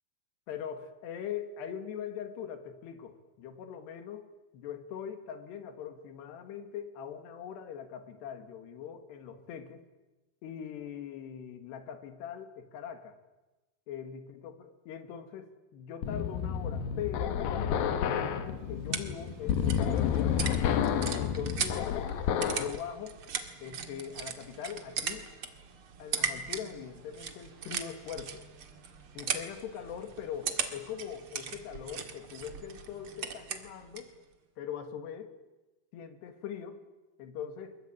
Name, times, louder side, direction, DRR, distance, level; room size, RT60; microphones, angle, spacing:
voice 1, 0.5-9.8 10.4-13.2 13.9-20.3 21.2-21.8 22.4-23.2 23.6-25.3 26.0-28.4 29.2-34.1 34.6-35.3 35.9-36.8 37.2-37.8, left 8 dB, 90° left, 9 dB, 4.0 m, -41 dB
sound 1, 16.0-22.8, left 8 dB, 70° left, 2.9 m, -30 dB
sound 2, 18.3-34.2, right 6 dB, 45° right, 1.9 m, -39 dB
24.5 x 22.0 x 8.8 m, 1.1 s
omnidirectional pair, 4.7 m